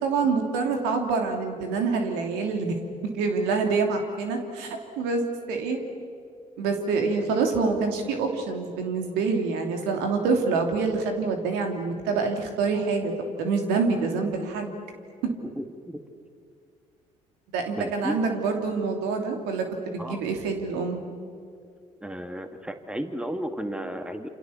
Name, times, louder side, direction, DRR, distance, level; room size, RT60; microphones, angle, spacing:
voice 1, 0.0-2.7 3.1-5.8 6.6-13.1 13.4-14.7 15.2-15.3 17.5-21.0, right 4 dB, 75° right, 4 dB, 3.0 m, -26 dB
voice 2, 15.6-16.0 17.8-18.3 20.0-20.2 22.0-24.3, equal, 5° right, 7 dB, 2.3 m, -33 dB
28.0 x 27.0 x 7.2 m, 2.3 s
hypercardioid pair, 50°, 17 cm